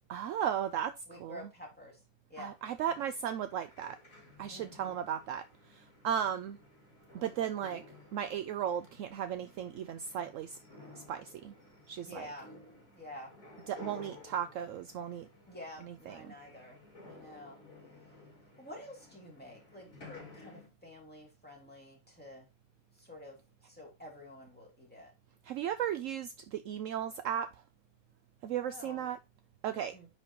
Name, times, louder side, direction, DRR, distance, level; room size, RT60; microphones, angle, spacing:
voice 1, 0.1-0.9 1.2-1.4 2.4-4.0 4.4-5.4 5.8-6.6 7.1-7.8 8.1-10.6 10.9-11.5 11.9-12.3 13.7-15.3 16.1-16.2 25.5-27.5 28.4-29.2 29.6-29.9, right 9 dB, 70° right, 0.9 m, -35 dB
voice 2, 1.1-2.0 2.3-2.6 2.9-3.1 4.5-5.0 12.0-12.5 12.9-13.3 15.5-16.8 17.1-17.6 18.6-22.5 22.9-25.1 28.6-29.1 29.7-30.1, left 1 dB, 5° left, 2.9 m, -49 dB
sound 1, 2.5-20.7, left 2 dB, 65° left, 4.6 m, -55 dB
9.8 x 4.4 x 2.9 m
omnidirectional pair, 1.5 m